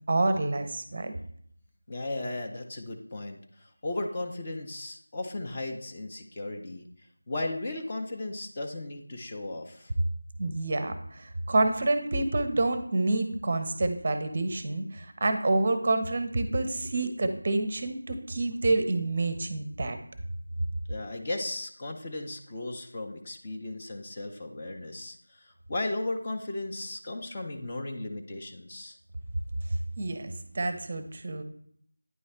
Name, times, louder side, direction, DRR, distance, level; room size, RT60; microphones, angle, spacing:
voice 1, 0.1-1.1 10.4-20.0 30.0-31.4, right 2 dB, 30° right, 9 dB, 0.6 m, -28 dB
voice 2, 1.9-6.9 7.3-9.9 20.9-29.0, left 2 dB, 25° left, 2 dB, 0.5 m, -36 dB
9.3 x 3.2 x 4.3 m, 0.64 s
figure-of-eight pair, 170°, 0 cm